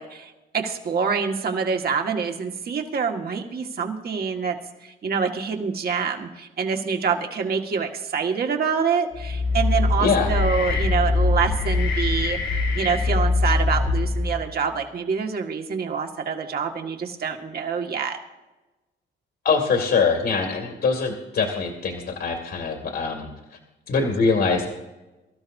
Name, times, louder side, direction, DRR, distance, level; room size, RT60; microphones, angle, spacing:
voice 1, 0.0-12.4 12.7-18.2, right 6 dB, 50° right, 3 dB, 1.8 m, -26 dB
sound 1, 9.1-14.5, left 3 dB, 90° left, 6.1 m, -23 dB
voice 2, 10.0-10.3 19.4-23.6 23.9-24.7, left 4 dB, 65° left, 1 dB, 2.5 m, -23 dB
24.0 x 13.0 x 2.7 m, 1.1 s
cardioid pair, 90°, 20 cm